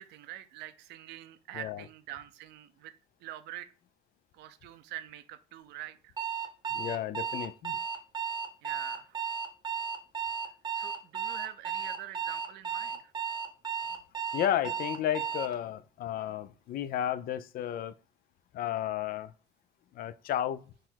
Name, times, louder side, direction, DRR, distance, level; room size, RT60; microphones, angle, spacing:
voice 1, 0.0-2.9 3.2-3.7 4.3-6.1 8.6-9.2 10.8-13.1, right 13 dB, 85° right, 0.6 m, -45 dB
Alarm, 6.2-15.6, right 7 dB, 25° right, 0.8 m, -34 dB
voice 2, 6.7-7.8 14.3-18.0 18.5-19.3 19.9-20.6, left 11 dB, 60° left, 0.4 m, -33 dB
3.8 x 3.1 x 4.5 m
cardioid pair, 110°, 17 cm